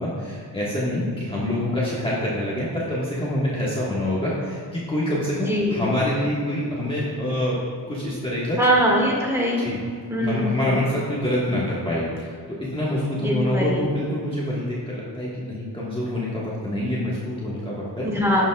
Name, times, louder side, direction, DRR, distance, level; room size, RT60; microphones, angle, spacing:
voice 1, 0.0-7.6 7.9-8.6 9.6-9.8 10.2-18.1, left 1 dB, 15° left, -8 dB, 1.6 m, -26 dB
voice 2, 5.5-5.8 8.6-9.7 10.1-10.8 11.6-11.7 13.2-13.8 18.0-18.5, equal, 5° right, -3 dB, 2.0 m, -22 dB
12.0 x 7.4 x 2.4 m, 2.1 s
wide cardioid pair, 90°, 41 cm